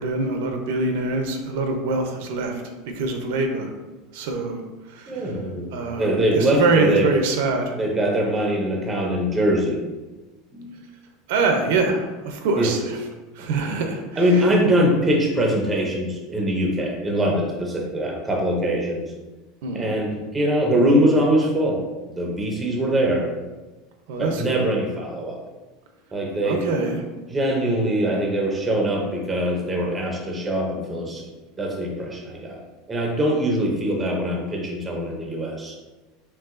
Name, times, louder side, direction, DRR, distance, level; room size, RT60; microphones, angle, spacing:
voice 1, 0.0-2.6 2.9-3.7 4.1-4.6 4.9-5.3 5.7-7.8 11.3-13.0 13.4-14.2 19.6-19.9 24.1-24.7 26.4-27.0, right 3 dB, 65° right, 4 dB, 0.6 m, -24 dB
voice 2, 5.1-7.1 7.8-9.8 10.5-10.7 12.6-12.7 13.4-13.5 14.2-19.0 19.7-21.8 22.1-23.3 24.2-25.4 26.1-26.7 27.3-31.2 31.6-32.6 32.9-35.8, right 1 dB, 10° right, 0 dB, 0.6 m, -22 dB
4.5 x 3.5 x 2.5 m, 1.1 s
supercardioid pair, 175°, 0 cm